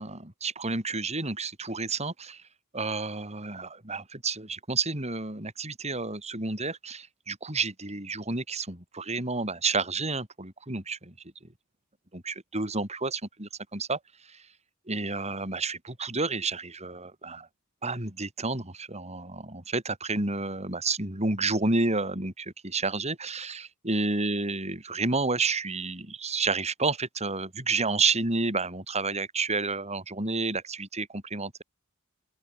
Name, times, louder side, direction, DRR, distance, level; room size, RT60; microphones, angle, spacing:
voice 1, 0.0-2.4 2.7-11.1 12.1-14.0 14.3-14.4 14.9-17.5 17.8-31.6, right 3 dB, 30° right, 5.6 m, -30 dB
open air
head